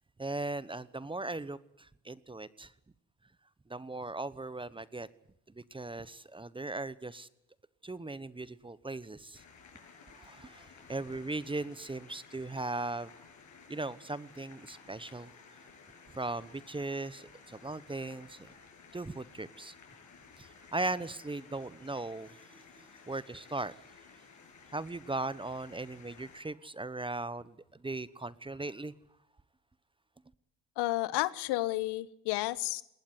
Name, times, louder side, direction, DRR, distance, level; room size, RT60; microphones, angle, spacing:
voice 1, 0.2-2.7 3.7-5.1 5.5-7.3 7.8-9.4 10.1-13.1 13.7-15.7 16.1-18.5 18.9-19.7 20.4-23.7 24.7-28.9, right 2 dB, 10° right, 1.1 m, -38 dB
sound 1, 9.3-26.4, left 5 dB, 45° left, 7.3 m, -56 dB
voice 2, 30.8-32.8, left 18 dB, 70° left, 1.3 m, -31 dB
20.5 x 19.0 x 9.6 m
supercardioid pair, 85°, 42 cm